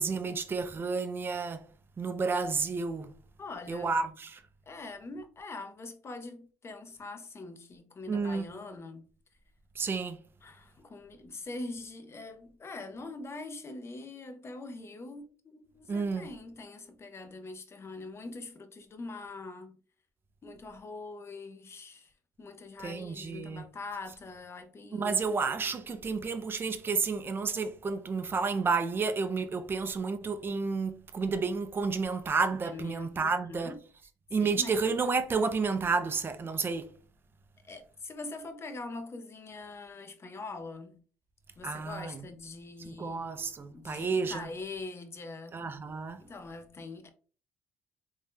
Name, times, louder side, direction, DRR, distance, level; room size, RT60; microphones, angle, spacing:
voice 1, 0.0-1.6 2.0-3.1 3.7-4.4 8.1-8.5 9.8-10.2 15.9-16.3 22.8-23.6 24.9-33.7 34.3-36.9 41.6-42.2 42.9-44.5 45.5-46.2, right 4 dB, 30° right, 0.5 m, -31 dB
voice 2, 3.4-3.9 4.7-9.0 10.4-19.8 20.4-22.1 22.4-25.2 32.6-33.8 34.4-34.8 37.6-41.0 41.6-43.3 43.7-45.6 46.2-47.1, left 3 dB, 35° left, 0.7 m, -43 dB
3.4 x 2.7 x 2.2 m
supercardioid pair, 70°, 8 cm